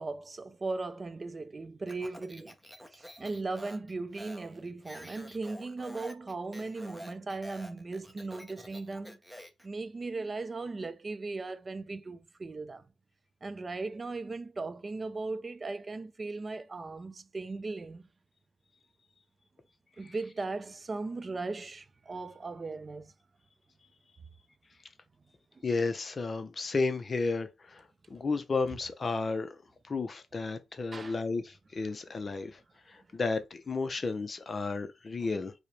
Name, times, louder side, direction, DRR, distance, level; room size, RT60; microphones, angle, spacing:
voice 1, 0.0-2.6 2.9-9.2 9.6-12.9 13.4-18.1 20.0-23.1 30.9-31.2 35.2-35.3, right 3 dB, 35° right, 0.4 m, -38 dB
Speech, 1.9-9.7, equal, ahead, 0.7 m, -49 dB
voice 2, 25.6-29.6 29.8-32.6 32.9-35.5, left 4 dB, 40° left, 0.5 m, -33 dB
4.7 x 2.1 x 3.1 m
cardioid pair, 80°, 0 cm